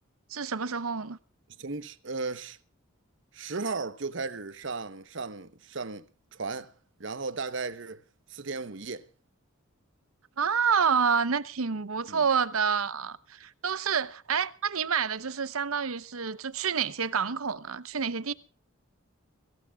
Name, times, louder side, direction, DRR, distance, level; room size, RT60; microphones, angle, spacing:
voice 1, 0.3-1.2 10.4-18.3, right 6 dB, 90° right, 0.8 m, -28 dB
voice 2, 1.6-2.6 3.3-6.1 6.3-6.7 7.0-8.0 8.3-9.1 12.1-12.3, right 4 dB, 60° right, 1.0 m, -35 dB
24.5 x 15.5 x 2.4 m
head